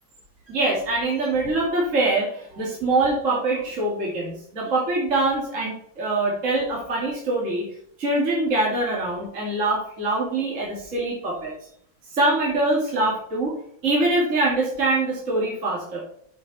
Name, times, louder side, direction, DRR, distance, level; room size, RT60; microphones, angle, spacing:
voice 1, 0.5-7.6 8.0-11.5 12.1-13.5 13.8-16.0, right 2 dB, 40° right, -4 dB, 2.7 m, -24 dB
9.0 x 6.6 x 4.2 m, 0.68 s
omnidirectional pair, 2.2 m